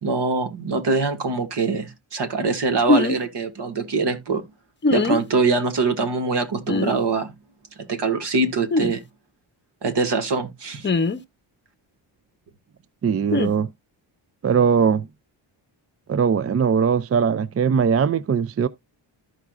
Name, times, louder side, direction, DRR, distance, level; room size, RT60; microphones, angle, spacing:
voice 1, 0.0-4.4 4.9-7.3 7.8-9.0 9.8-10.9, right 4 dB, 65° right, 1.9 m, -23 dB
sound 1, 2.9-3.2 4.8-5.2 6.7-6.9 8.7-8.9 10.8-11.2 13.3-13.5, left 3 dB, 25° left, 0.7 m, -20 dB
voice 2, 13.0-13.7 14.4-15.1 16.1-18.7, right 6 dB, 35° right, 0.4 m, -20 dB
14.0 x 4.8 x 2.4 m
wide cardioid pair, 110°, 45 cm